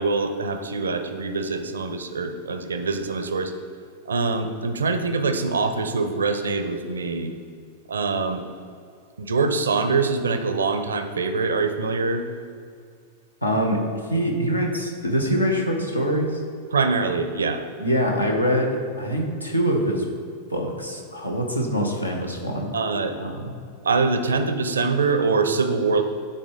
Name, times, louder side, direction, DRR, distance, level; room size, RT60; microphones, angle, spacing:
voice 1, 0.0-3.5 4.1-7.3 7.9-8.4 9.2-12.2 16.7-17.6 22.7-23.1 23.8-26.0, right 4 dB, 70° right, 8 dB, 0.5 m, -24 dB
voice 2, 13.4-13.8 14.1-16.4 17.8-20.1 20.5-22.7 23.2-23.5, equal, 85° left, 1 dB, 0.9 m, -24 dB
9.0 x 4.0 x 3.8 m, 2.3 s
figure-of-eight pair, 90°, 0 cm